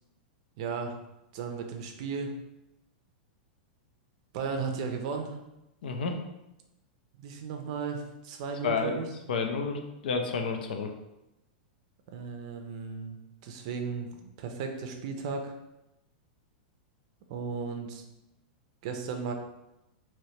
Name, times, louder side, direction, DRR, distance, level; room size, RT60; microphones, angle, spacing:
voice 1, 0.6-1.0 1.3-2.3 4.3-5.4 7.2-9.1 12.1-15.5 17.3-18.0 18.8-19.3, right 5 dB, 45° right, 4 dB, 0.4 m, -35 dB
voice 2, 5.8-6.2 8.6-10.9, left 5 dB, 80° left, 4 dB, 0.5 m, -31 dB
3.2 x 2.9 x 2.8 m, 0.91 s
supercardioid pair, 170°, 5 cm